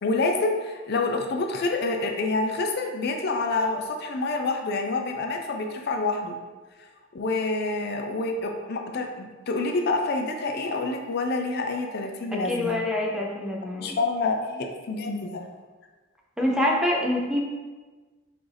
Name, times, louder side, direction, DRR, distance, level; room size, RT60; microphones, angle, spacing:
voice 1, 0.0-6.4 7.1-12.8 13.8-15.4, left 3 dB, 55° left, 3 dB, 0.4 m, -27 dB
voice 2, 12.3-13.9 16.4-17.4, left 1 dB, 5° right, -2 dB, 0.6 m, -25 dB
5.8 x 2.6 x 3.3 m, 1.3 s
head